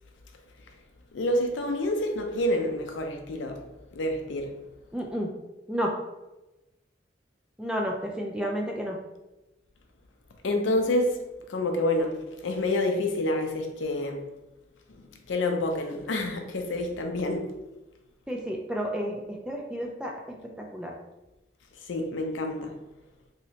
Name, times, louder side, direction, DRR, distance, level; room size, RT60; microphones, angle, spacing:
voice 1, 1.1-3.6 3.9-4.5 10.4-11.2 11.5-12.1 12.4-14.2 15.0-17.5 21.9-22.7, left 1 dB, 85° left, 4 dB, 0.5 m, -28 dB
voice 2, 4.9-5.3 5.7-6.0 7.6-9.0 18.3-20.1 20.6-20.9, equal, 5° right, 0 dB, 0.3 m, -31 dB
3.0 x 2.8 x 2.8 m, 1.0 s
head